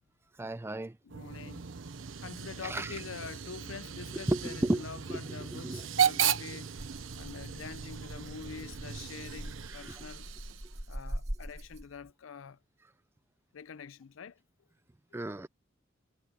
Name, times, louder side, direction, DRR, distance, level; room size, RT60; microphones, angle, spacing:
voice 1, 0.4-1.0 2.6-3.0 4.1-5.9 9.7-10.0 15.1-15.5, right 1 dB, 10° right, 0.4 m, -34 dB
voice 2, 1.0-1.7 2.2-6.7 7.2-10.3 10.9-12.6 13.5-14.4, left 6 dB, 90° left, 0.5 m, -45 dB
sound 1, 1.1-9.7, right 3 dB, 65° right, 0.7 m, -45 dB
Hiss / Train / Alarm, 1.3-10.9, right 9 dB, 85° right, 1.0 m, -36 dB
Rattle (instrument), 6.8-12.1, equal, 35° right, 1.9 m, -43 dB
head